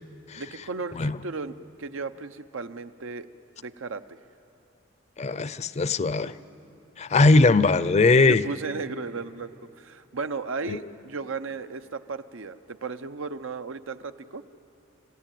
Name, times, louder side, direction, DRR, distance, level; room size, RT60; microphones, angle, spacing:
voice 1, 0.3-3.3 3.6-4.2 8.1-14.4, right 4 dB, 85° right, 10 dB, 0.8 m, -35 dB
voice 2, 5.2-6.3 7.0-8.4 10.7-10.8, left 3 dB, 35° left, 15 dB, 0.5 m, -20 dB
29.0 x 15.0 x 9.2 m, 2.7 s
head